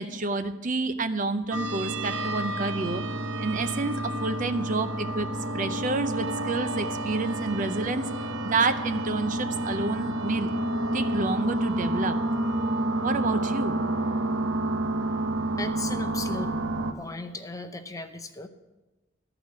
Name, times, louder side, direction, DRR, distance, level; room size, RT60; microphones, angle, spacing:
voice 1, 0.0-3.0 3.4-5.3 5.5-8.1 8.4-10.5 10.9-12.2 13.0-13.8, right 3 dB, 40° right, 9 dB, 0.6 m, -29 dB
sound 1, 1.5-16.9, right 1 dB, 80° right, 0.9 m, -29 dB
voice 2, 15.6-16.5 17.0-18.5, left 2 dB, 15° left, 7 dB, 0.6 m, -36 dB
13.0 x 5.0 x 8.1 m, 1.1 s
head